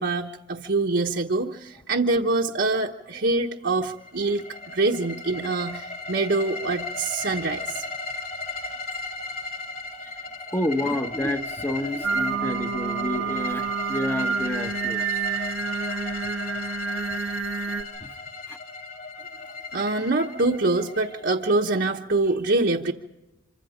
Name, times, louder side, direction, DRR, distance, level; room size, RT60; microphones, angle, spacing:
voice 1, 0.0-7.8 19.7-22.9, right 2 dB, 55° right, -1 dB, 1.1 m, -25 dB
sound 1, 3.8-21.6, left 3 dB, 45° left, 2.8 m, -36 dB
voice 2, 10.0-15.4 15.9-16.1 16.7-16.8 18.0-18.1 18.5-18.6, left 1 dB, 10° left, 6 dB, 1.0 m, -30 dB
Singing, 12.0-17.8, right 5 dB, 75° right, 1.7 m, -28 dB
26.5 x 25.0 x 5.1 m, 1.0 s
head